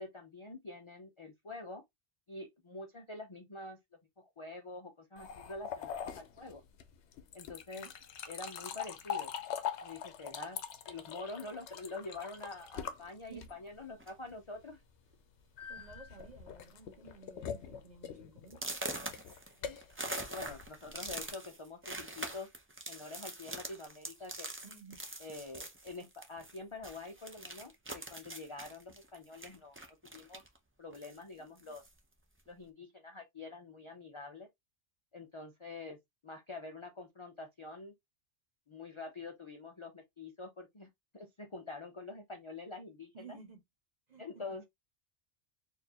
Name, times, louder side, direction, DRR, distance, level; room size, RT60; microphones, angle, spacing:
voice 1, 0.0-1.8 2.3-3.8 4.2-6.6 7.3-7.9 8.3-9.3 9.8-10.6 10.9-14.8 19.6-19.8 20.3-22.5 22.9-24.5 25.2-29.8 30.1-30.4 30.8-31.9 32.5-34.5 35.1-36.0 36.2-37.9 38.7-40.9 41.1-43.4 44.2-44.6, left 3 dB, 35° left, 0.5 m, -46 dB
sound 1, 5.2-13.8 15.6-21.3, left 8 dB, 70° left, 0.9 m, -43 dB
sound 2, 14.0-14.3 15.1-15.2 15.6-15.9 16.2-16.6 17.1-17.2 17.6-17.7 18.5-26.6 26.8-30.6 30.9-32.0, right 2 dB, 15° right, 0.4 m, -44 dB
voice 2, 15.7-18.6 24.6-25.0 43.1-43.6 44.1-44.2 44.5-44.6, right 4 dB, 35° right, 1.2 m, -53 dB
4.3 x 2.7 x 2.8 m
omnidirectional pair, 1.2 m